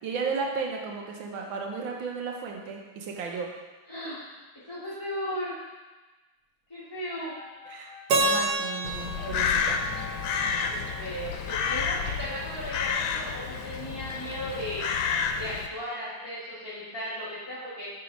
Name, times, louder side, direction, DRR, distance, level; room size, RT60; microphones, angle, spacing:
voice 1, 0.0-3.5 7.7-9.8, right 5 dB, 80° right, 1 dB, 1.7 m, -34 dB
voice 2, 3.9-4.2 4.7-5.6 6.7-7.3 10.7-14.9 15.3-17.9, equal, 15° left, -11 dB, 1.3 m, -36 dB
sound 1, 7.1-12.1, left 4 dB, 40° right, 1.7 m, -48 dB
Keyboard (musical), 8.1-11.1, right 2 dB, 60° right, 1.3 m, -29 dB
Crow, 8.8-15.7, left 6 dB, 80° left, 1.4 m, -30 dB
7.8 x 4.0 x 5.2 m, 1.2 s
omnidirectional pair, 2.1 m